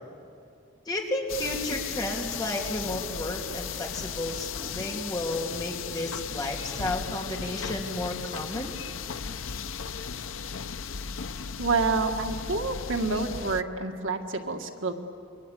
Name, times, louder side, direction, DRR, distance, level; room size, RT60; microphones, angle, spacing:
voice 1, 0.9-8.7, left 1 dB, 20° left, 0 dB, 3.1 m, -32 dB
sound 1, 1.3-13.6, left 6 dB, 85° left, 0.7 m, -36 dB
voice 2, 11.6-14.9, right 3 dB, 70° right, 4 dB, 2.0 m, -28 dB
28.5 x 23.5 x 8.6 m, 2.4 s
head